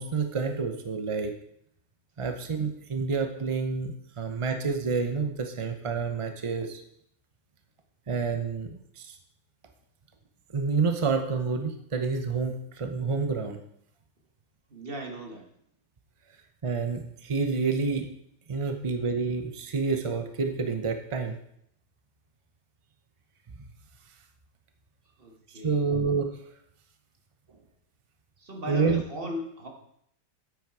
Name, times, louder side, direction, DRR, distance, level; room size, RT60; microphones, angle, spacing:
voice 1, 0.0-1.3 2.2-6.8 8.1-9.2 10.5-13.6 16.6-18.1 18.5-21.3 23.6-23.7 25.6-26.3 28.7-29.0, right 4 dB, 50° right, 6 dB, 0.3 m, -28 dB
voice 2, 14.7-15.5 25.2-25.8 28.4-29.7, equal, 35° right, 1 dB, 1.7 m, -37 dB
9.1 x 8.3 x 4.7 m, 0.71 s
omnidirectional pair, 1.8 m